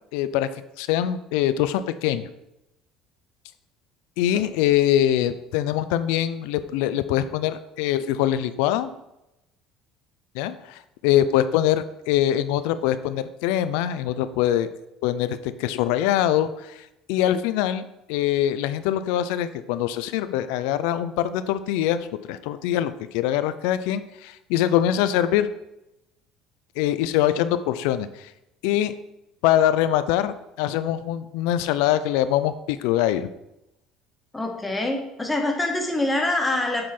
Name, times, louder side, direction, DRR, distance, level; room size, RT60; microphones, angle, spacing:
voice 1, 0.1-0.5 0.8-2.3 4.2-8.9 10.3-14.7 15.0-16.8 17.1-17.8 18.1-25.5 26.8-28.3 28.6-28.9 29.4-33.3, left 11 dB, 85° left, 13 dB, 0.4 m, -23 dB
voice 2, 34.3-36.8, left 2 dB, 10° left, 2 dB, 1.3 m, -25 dB
7.6 x 3.7 x 4.3 m, 0.89 s
cardioid pair, 115°, 0 cm